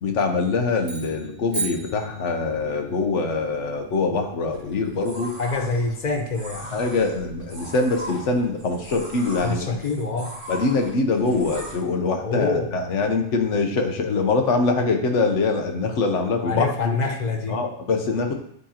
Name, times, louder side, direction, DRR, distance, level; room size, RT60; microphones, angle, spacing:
voice 1, 0.0-5.3 6.7-9.8 10.5-17.0 17.5-18.3, left 3 dB, 70° left, 4 dB, 1.2 m, -23 dB
sound 1, 0.8-2.7, right 4 dB, 40° right, 2.1 m, -33 dB
sound 2, 4.5-11.7, right 1 dB, 80° right, 1.9 m, -39 dB
voice 2, 5.4-6.7 9.4-10.4 12.2-12.7 16.4-17.6, left 3 dB, 40° left, 3 dB, 0.8 m, -26 dB
9.6 x 3.7 x 2.8 m, 0.68 s
omnidirectional pair, 1.3 m